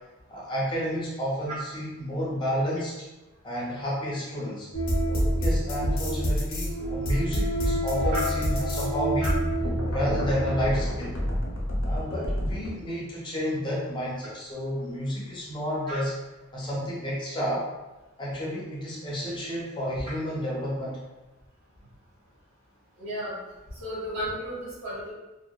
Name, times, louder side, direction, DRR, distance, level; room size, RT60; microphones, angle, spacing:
voice 1, 0.3-2.9 3.4-4.7 5.1-9.5 9.9-11.2 11.8-16.1 16.5-17.7 18.2-21.0, equal, 25° left, -5 dB, 0.5 m, -31 dB
sound 1, 4.7-12.7, equal, 80° left, 0.6 m, -27 dB
voice 2, 23.0-23.4 23.7-25.1, equal, 70° right, -9 dB, 1.4 m, -33 dB
2.6 x 2.1 x 2.2 m, 1.1 s
head